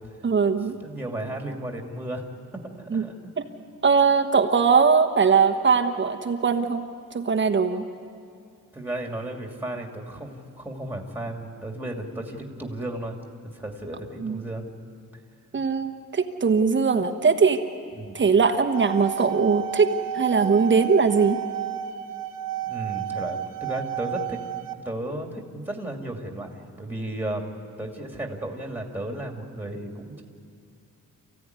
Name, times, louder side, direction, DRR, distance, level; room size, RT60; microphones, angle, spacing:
voice 1, 0.2-0.8 2.9-3.1 3.4-3.5 3.8-7.8 14.2-14.4 15.5-17.6 18.1-21.4, right 5 dB, 35° right, 6 dB, 1.2 m, -21 dB
voice 2, 0.8-2.2 2.8-3.1 8.7-13.1 13.5-14.6 15.5-15.6 17.9-18.2 22.6-24.4 24.8-26.5 26.8-27.5 27.8-30.2, right 1 dB, 5° right, 2 dB, 2.5 m, -34 dB
sound 1, 18.5-24.7, right 11 dB, 80° right, 1.0 m, -32 dB
28.5 x 16.0 x 9.5 m, 2.4 s
wide cardioid pair, 165°, 33 cm